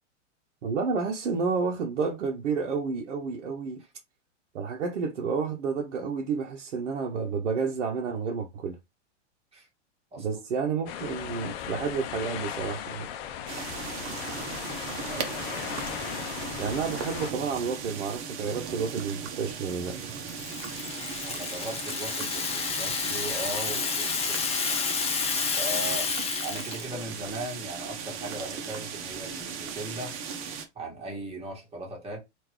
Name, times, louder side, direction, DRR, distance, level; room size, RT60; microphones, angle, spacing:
voice 1, 0.6-3.8 4.5-8.8 10.2-13.1 16.6-20.0, right 5 dB, 75° right, 0.9 m, -30 dB
sound 1, 10.9-17.3, left 9 dB, 55° left, 0.7 m, -37 dB
sound 2, 13.5-30.7, right 6 dB, 35° right, 0.9 m, -38 dB
voice 2, 15.1-16.0 21.2-24.6 25.5-26.1 26.4-30.1 30.7-32.2, right 1 dB, 15° right, 1.6 m, -38 dB
Rattle (instrument), 19.9-26.9, left 5 dB, 15° left, 0.7 m, -30 dB
3.7 x 2.6 x 3.1 m
hypercardioid pair, 110°, 36 cm